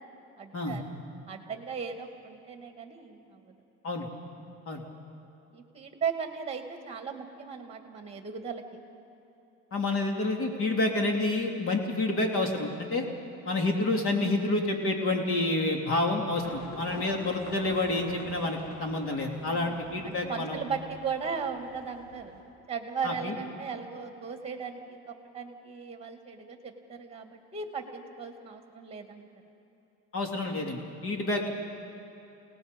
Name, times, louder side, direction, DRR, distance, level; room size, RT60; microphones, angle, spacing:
voice 1, 0.1-0.8 1.3-3.5 5.5-8.6 19.4-22.4 22.7-29.3, right 6 dB, 15° right, 5 dB, 2.2 m, -37 dB
voice 2, 9.7-13.0 13.4-20.6 23.0-23.3 30.1-31.5, left 2 dB, 40° left, 2 dB, 3.2 m, -29 dB
Livestock farm animals working animals, 16.3-22.4, left 1 dB, 80° left, 7.0 m, -46 dB
29.0 x 18.5 x 5.3 m, 2.9 s
cardioid pair, 130°, 34 cm